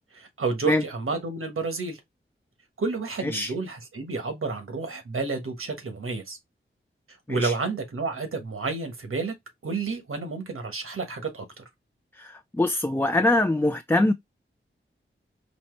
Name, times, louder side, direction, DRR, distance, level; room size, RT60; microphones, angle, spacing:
voice 1, 0.1-2.0 2.8-6.4 7.3-9.3 9.6-11.6, right 4 dB, 90° right, 1.3 m, -30 dB
voice 2, 12.1-14.1, left 2 dB, 10° left, 0.4 m, -23 dB
4.2 x 2.8 x 3.2 m
wide cardioid pair, 90°, 21 cm